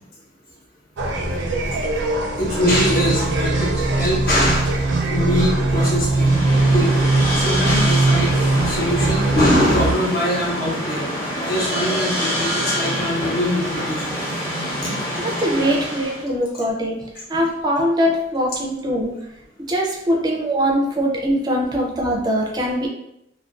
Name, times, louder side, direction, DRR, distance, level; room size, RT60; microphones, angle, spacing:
sound 1, 1.0-9.9, right 2 dB, 80° right, 0.4 m, -20 dB
voice 1, 2.4-4.8 5.1-6.4 6.7-6.9 7.3-11.1 11.4-14.2 14.8-14.9 17.3-17.4, left 1 dB, 55° left, -7 dB, 0.8 m, -22 dB
sound 2, 6.1-16.3, equal, 15° left, 0.7 m, -26 dB
voice 2, 15.2-19.1 19.7-22.9, equal, 20° right, -1 dB, 0.4 m, -22 dB
2.4 x 2.1 x 2.4 m, 0.82 s
head